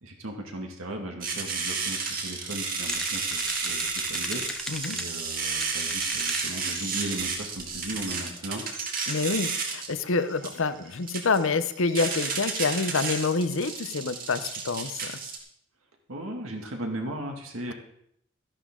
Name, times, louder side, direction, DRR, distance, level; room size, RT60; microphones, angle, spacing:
voice 1, 0.0-4.6 4.9-8.6 9.0-9.1 16.1-17.7, right 1 dB, 80° right, 2 dB, 2.3 m, -37 dB
sound 1, 1.2-15.4, right 4 dB, 40° right, 2.0 m, -32 dB
sound 2, 2.9-5.0 5.4-6.5 6.9-7.0 7.2-7.3 7.6-8.1, left 1 dB, 5° left, 0.8 m, -36 dB
voice 2, 4.7-5.0 9.1-15.1, left 4 dB, 70° left, 11 dB, 0.7 m, -27 dB
13.5 x 11.0 x 3.8 m, 0.72 s
head